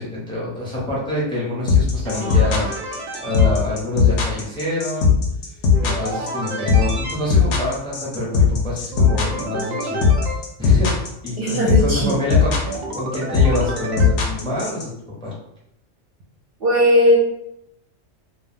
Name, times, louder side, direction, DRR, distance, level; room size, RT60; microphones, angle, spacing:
voice 1, 0.0-2.7 3.2-5.1 5.5-10.1 10.6-12.5 12.9-14.9 15.2-15.3, left 1 dB, 5° left, -5 dB, 0.6 m, -26 dB
sound 1, 1.7-14.8, left 6 dB, 70° left, 0.9 m, -17 dB
sound 2, 2.0-3.5 5.7-7.1 8.9-10.3 12.7-14.1, right 2 dB, 80° right, 0.4 m, -30 dB
voice 2, 11.4-12.2 16.6-17.2, equal, 60° right, -4 dB, 0.7 m, -17 dB
2.3 x 2.2 x 3.4 m, 0.78 s
omnidirectional pair, 1.3 m